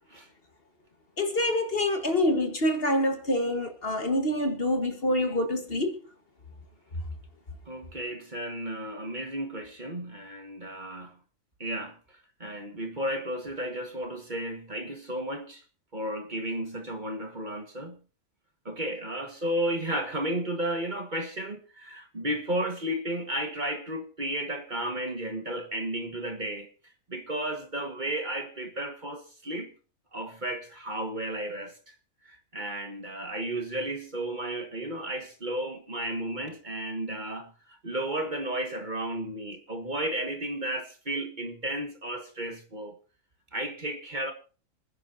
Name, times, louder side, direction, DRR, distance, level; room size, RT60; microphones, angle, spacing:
voice 1, 1.2-6.0, left 1 dB, 45° left, 1.7 m, -26 dB
voice 2, 7.7-11.2 11.6-15.6 15.9-18.0 18.7-26.7 27.1-29.7 30.1-32.0 32.2-43.0 43.5-44.3, right 1 dB, 35° right, 1.8 m, -33 dB
26.0 x 10.5 x 2.8 m
omnidirectional pair, 1.4 m